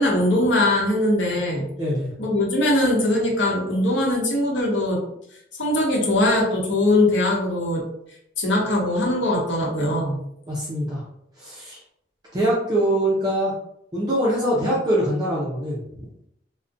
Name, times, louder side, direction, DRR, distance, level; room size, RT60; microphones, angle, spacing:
voice 1, 0.0-1.7 2.2-5.0 5.6-7.8 8.4-10.2, left 1 dB, 80° left, -2 dB, 0.8 m, -21 dB
voice 2, 1.8-2.1 10.5-11.0 11.4-11.8 12.3-13.5 13.9-15.8, right 1 dB, 20° right, -6 dB, 0.4 m, -23 dB
2.5 x 2.1 x 2.5 m, 0.75 s
head